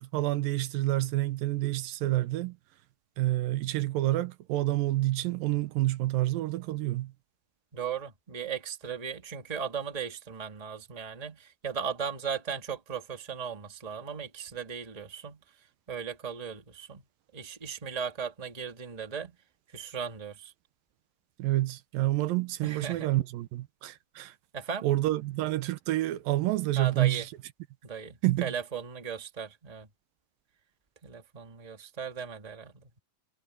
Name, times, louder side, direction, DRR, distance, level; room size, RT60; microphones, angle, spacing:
voice 1, 0.0-2.6 3.2-7.1 21.4-24.4 24.8-27.3 28.2-28.5, right 16 dB, 85° right, 2.6 m, -28 dB
voice 2, 7.7-15.4 15.9-17.0 17.3-19.3 19.7-20.5 22.6-23.1 24.5-24.8 26.8-27.2 27.8-29.9 31.0-33.0, right 6 dB, 15° right, 1.5 m, -37 dB
omnidirectional pair, 4.0 m